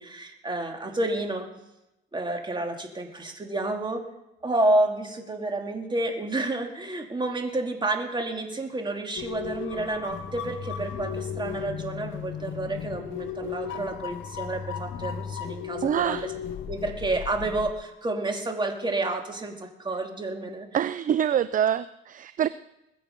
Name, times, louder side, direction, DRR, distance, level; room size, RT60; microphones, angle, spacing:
voice 1, 0.0-1.5 2.1-4.0 4.4-16.3 16.7-20.7, right 2 dB, 25° right, 3 dB, 2.6 m, -29 dB
sound 1, 9.2-17.7, left 8 dB, 75° left, 1.1 m, -35 dB
voice 2, 15.8-16.3 20.7-22.5, right 9 dB, 40° right, 15 dB, 0.4 m, -25 dB
21.0 x 8.1 x 5.3 m, 0.90 s
cardioid pair, 90°, 20 cm